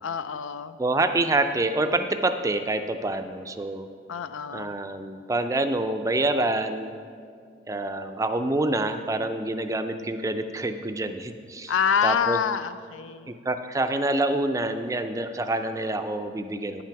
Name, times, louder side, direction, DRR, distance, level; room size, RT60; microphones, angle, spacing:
voice 1, 0.0-0.8 4.1-4.8 11.7-13.3, left 7 dB, 85° left, 12 dB, 0.4 m, -26 dB
voice 2, 0.8-3.9 4.5-6.9 7.7-11.7 12.0-12.4 13.3-16.8, right 2 dB, 15° right, 8 dB, 0.4 m, -27 dB
9.6 x 6.0 x 5.8 m, 2.2 s
head